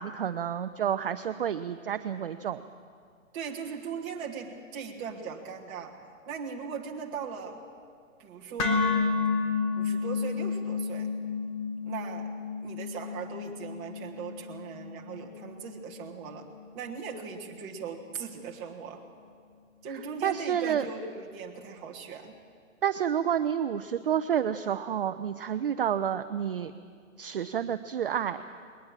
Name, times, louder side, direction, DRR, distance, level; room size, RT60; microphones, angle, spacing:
voice 1, 0.0-2.6 20.2-20.9 22.8-26.7 27.2-28.4, right 9 dB, 45° right, 10 dB, 0.5 m, -29 dB
voice 2, 3.3-6.0 6.3-7.6 8.2-8.9 9.8-11.1 11.8-12.3 12.6-16.5 16.7-19.0 19.8-22.3, right 6 dB, 15° right, -1 dB, 1.4 m, -39 dB
sound 1, 8.6-16.7, left 5 dB, 15° left, 1.0 m, -31 dB
20.5 x 19.0 x 7.3 m, 2.2 s
hypercardioid pair, 165°, 40 cm